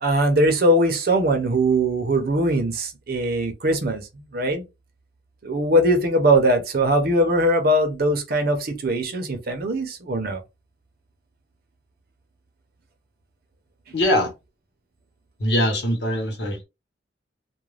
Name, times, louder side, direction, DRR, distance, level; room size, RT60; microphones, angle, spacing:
voice 1, 0.0-4.1 4.3-4.6 5.4-10.4, right 1 dB, 60° right, 0.7 m, -21 dB
voice 2, 13.9-14.3 15.4-16.6, equal, 75° left, 1.1 m, -22 dB
2.4 x 2.2 x 3.1 m
head